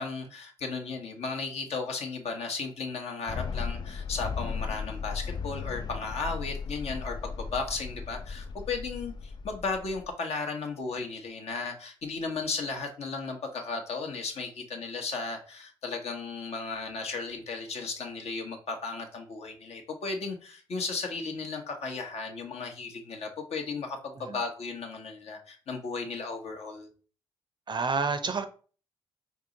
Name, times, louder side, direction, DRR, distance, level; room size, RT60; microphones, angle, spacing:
voice 1, 0.0-26.9, left 4 dB, 65° left, 0.9 m, -35 dB
sound 1, 3.3-10.2, left 5 dB, 40° left, 0.3 m, -36 dB
voice 2, 27.7-28.5, right 4 dB, 40° right, 0.6 m, -28 dB
4.6 x 2.0 x 3.7 m
supercardioid pair, 50°, 12 cm